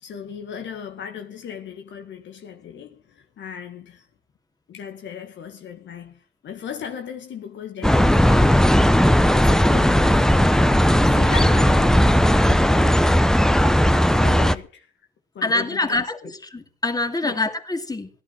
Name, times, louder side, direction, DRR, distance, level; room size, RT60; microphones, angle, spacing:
voice 1, 0.0-4.0 4.7-8.7 9.2-10.3 11.0-13.3 13.9-14.9 15.4-16.3 17.2-17.4, left 7 dB, 65° left, 1.9 m, -37 dB
sound 1, 7.8-14.5, equal, 5° left, 0.9 m, -16 dB
voice 2, 15.4-18.1, left 2 dB, 20° left, 2.7 m, -25 dB
16.5 x 11.5 x 5.7 m
cardioid pair, 90°, 20 cm